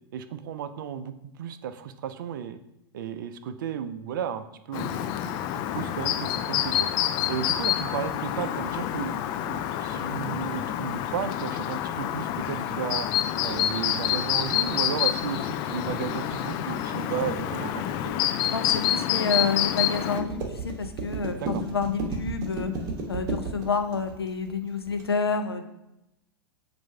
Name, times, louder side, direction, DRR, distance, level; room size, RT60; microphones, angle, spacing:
voice 1, 0.1-2.6 2.9-6.9 7.3-9.2 9.4-13.1 13.4-17.8 21.4-21.6, right 8 dB, 55° right, 11 dB, 0.5 m, -34 dB
Chirp tweet, 4.7-20.2, left 11 dB, 30° left, 0.3 m, -28 dB
sound 1, 13.5-25.0, right 3 dB, 30° right, 1.3 m, -35 dB
voice 2, 18.5-22.7 23.1-25.6, left 5 dB, 75° left, 7 dB, 0.7 m, -29 dB
7.5 x 2.6 x 5.5 m, 0.87 s
figure-of-eight pair, 95°, 13 cm